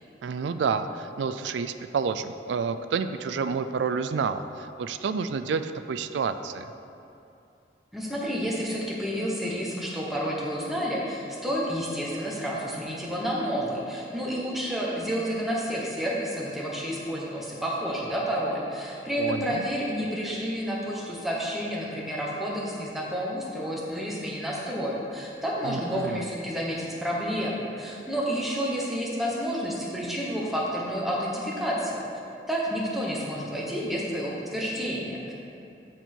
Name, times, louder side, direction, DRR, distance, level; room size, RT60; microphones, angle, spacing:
voice 1, 0.2-6.7 19.2-19.7 25.6-26.3, right 5 dB, 90° right, 10 dB, 0.3 m, -29 dB
voice 2, 7.9-32.1 32.5-35.3, equal, ahead, -5 dB, 1.2 m, -30 dB
13.0 x 4.4 x 4.5 m, 2.7 s
head